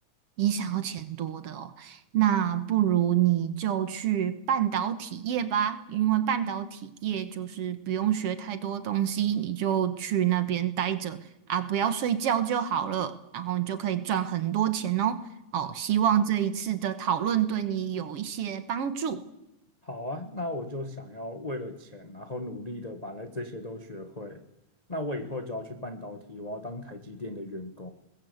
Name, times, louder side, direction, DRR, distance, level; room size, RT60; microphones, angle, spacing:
voice 1, 0.4-11.2 11.5-15.2 15.5-19.2, right 10 dB, 60° right, 11 dB, 1.9 m, -27 dB
voice 2, 19.8-24.4 24.9-27.9, left 1 dB, 55° left, 7 dB, 0.4 m, -37 dB
22.5 x 20.5 x 7.9 m, 0.90 s
omnidirectional pair, 3.4 m